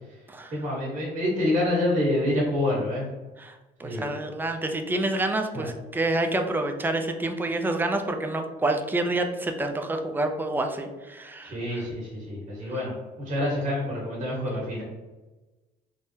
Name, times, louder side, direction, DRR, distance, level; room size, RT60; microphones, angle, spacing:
voice 1, 0.5-3.0 3.8-4.1 5.5-5.7 11.4-14.8, left 1 dB, 45° right, -4 dB, 1.4 m, -27 dB
voice 2, 3.4-11.8, right 2 dB, 10° right, 5 dB, 0.3 m, -28 dB
3.6 x 2.1 x 2.7 m, 1.1 s
cardioid pair, 110°, 17 cm